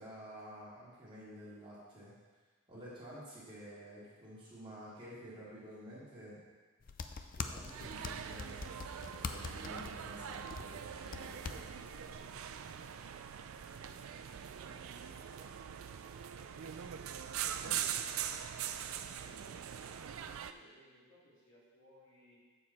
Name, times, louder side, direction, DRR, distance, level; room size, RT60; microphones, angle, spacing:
voice 1, 0.0-2.1 2.7-6.4 7.4-8.6 9.2-11.6 17.5-17.7, equal, 25° right, -9 dB, 2.5 m, -51 dB
sound 1, 6.8-12.9, left 5 dB, 40° left, 0.4 m, -45 dB
sound 2, 7.6-20.5, right 9 dB, 70° right, 0.4 m, -42 dB
voice 2, 13.6-22.4, equal, 60° left, -8 dB, 2.8 m, -65 dB
7.5 x 6.8 x 4.2 m, 1.4 s
head